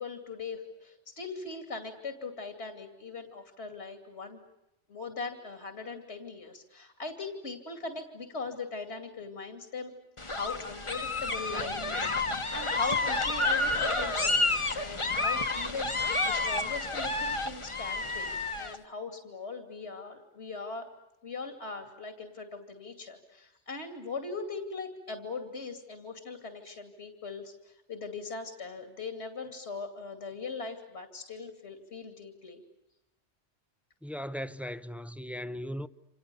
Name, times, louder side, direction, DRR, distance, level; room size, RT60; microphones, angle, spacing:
voice 1, 0.0-4.4 4.9-9.9 10.2-20.9 21.2-32.6, left 4 dB, 70° left, 2.9 m, -40 dB
sound 1, 10.2-18.8, left 3 dB, 25° left, 1.3 m, -30 dB
voice 2, 34.0-35.9, equal, ahead, 0.7 m, -37 dB
29.0 x 27.0 x 6.9 m
omnidirectional pair, 1.2 m